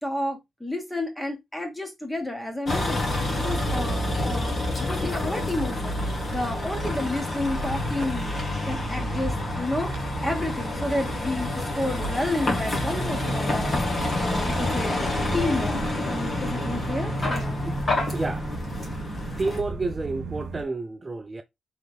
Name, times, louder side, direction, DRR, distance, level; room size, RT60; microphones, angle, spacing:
voice 1, 0.0-9.9 10.2-17.6, left 1 dB, 10° left, 1.2 m, -31 dB
Vehicle, 2.7-19.6, left 2 dB, 40° left, 1.2 m, -28 dB
sound 1, 7.2-20.6, right 2 dB, 60° right, 1.5 m, -35 dB
voice 2, 18.1-18.5 19.4-21.4, right 3 dB, 25° right, 0.4 m, -30 dB
3.9 x 3.3 x 3.3 m
cardioid pair, 115°, 0 cm